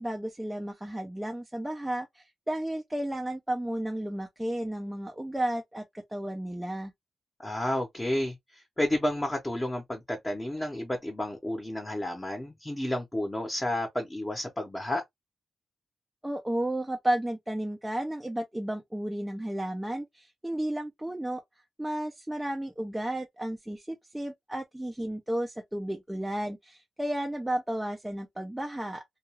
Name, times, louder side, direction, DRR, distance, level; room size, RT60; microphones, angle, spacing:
voice 1, 0.0-6.9 16.2-21.4 21.8-29.0, right 1 dB, 10° right, 0.5 m, -33 dB
voice 2, 7.4-15.0, left 1 dB, 15° left, 0.8 m, -31 dB
2.3 x 2.3 x 3.0 m
cardioid pair, 110°, 0 cm